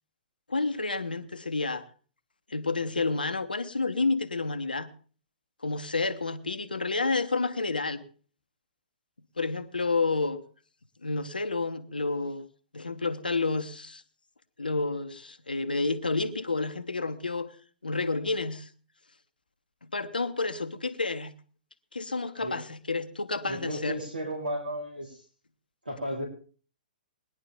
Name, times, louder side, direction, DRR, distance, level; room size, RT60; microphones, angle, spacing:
voice 1, 0.5-1.8 2.5-4.9 5.6-8.0 9.4-10.4 11.0-12.4 12.7-14.0 14.6-17.5 17.8-18.7 19.9-21.3 21.9-24.0, left 3 dB, 80° left, 1.1 m, -30 dB
voice 2, 23.4-25.2 25.9-26.2, equal, 80° right, 3.6 m, -34 dB
19.5 x 11.0 x 3.5 m
figure-of-eight pair, 115°, 5 cm